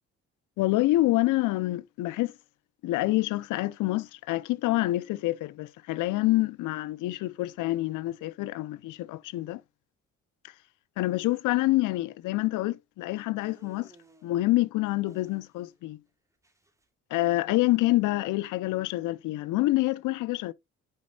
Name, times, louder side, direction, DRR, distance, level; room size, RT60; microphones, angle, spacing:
voice 1, 0.6-2.4 2.8-9.6 10.4-10.5 11.0-13.9 14.2-16.0 17.1-20.5, left 18 dB, 85° left, 0.6 m, -27 dB
sound 1, 13.4-14.3 15.1-16.9, right 2 dB, 10° right, 2.6 m, -59 dB
9.8 x 5.3 x 2.3 m
cardioid pair, 90°, 30 cm